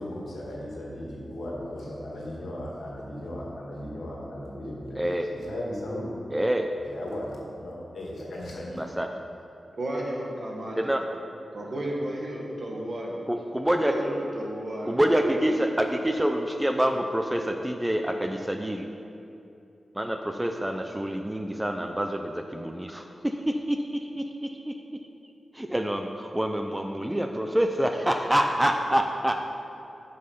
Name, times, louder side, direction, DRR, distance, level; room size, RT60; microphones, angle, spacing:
voice 1, 0.0-6.3 6.8-8.8, left 1 dB, 80° left, -4 dB, 2.0 m, -36 dB
voice 2, 5.0-5.3 6.3-6.7 8.8-9.1 10.8-11.0 13.3-13.9 14.9-18.9 20.0-24.7 25.5-29.4, right 1 dB, 10° right, 4 dB, 0.5 m, -27 dB
voice 3, 9.7-10.9 11.5-13.1 13.9-15.6, right 1 dB, 60° right, -2 dB, 1.6 m, -33 dB
8.0 x 5.4 x 5.6 m, 2.8 s
cardioid pair, 75°, 0 cm